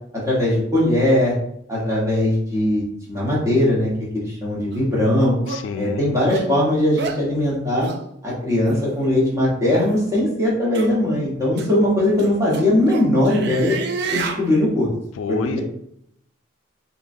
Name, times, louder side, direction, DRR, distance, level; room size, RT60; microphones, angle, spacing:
voice 1, 0.2-1.3 1.7-5.3 5.7-7.9 8.2-13.7 14.1-14.9 15.3-15.6, left 1 dB, 15° right, -6 dB, 1.2 m, -20 dB
sound 1, 4.7-4.8 5.5-5.6 6.3-6.5 7.0-7.2 7.8-8.0 8.6-8.8 9.7-10.0 10.7-10.9 11.6-11.7 12.2-14.4, right 5 dB, 55° right, 0.3 m, -29 dB
voice 2, 5.5-6.0 15.2-15.6, left 5 dB, 75° left, 8 dB, 0.3 m, -28 dB
3.6 x 3.0 x 2.6 m, 0.73 s
head